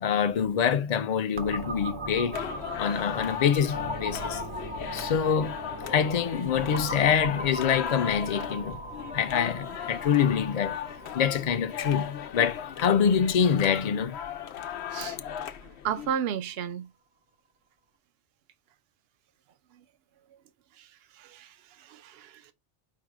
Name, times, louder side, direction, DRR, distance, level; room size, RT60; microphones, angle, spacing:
voice 1, 0.0-2.4 2.8-4.4 4.9-5.5 5.9-8.8 9.1-10.8 11.1-14.2, left 7 dB, 45° left, 0.6 m, -25 dB
sound 1, 1.4-14.9, right 1 dB, 30° right, 0.7 m, -39 dB
sound 2, 2.3-16.1, left 9 dB, 85° left, 0.9 m, -37 dB
voice 2, 15.8-16.9 21.2-21.5 21.8-22.3, right 8 dB, 70° right, 0.8 m, -32 dB
4.7 x 2.2 x 4.7 m
omnidirectional pair, 1.1 m